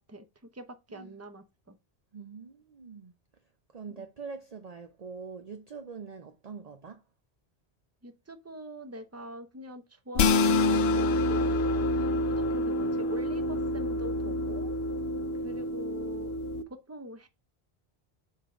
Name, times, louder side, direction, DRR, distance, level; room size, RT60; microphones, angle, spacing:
voice 1, 0.5-1.8 3.9-4.1 8.0-14.7 15.4-16.4 16.7-17.3, right 1 dB, 15° right, 0.8 m, -44 dB
voice 2, 2.1-3.1 3.7-7.0, right 5 dB, 45° right, 0.7 m, -43 dB
sound 1, 10.1-16.6, left 2 dB, 75° left, 0.9 m, -27 dB
7.3 x 3.8 x 4.5 m
omnidirectional pair, 1.1 m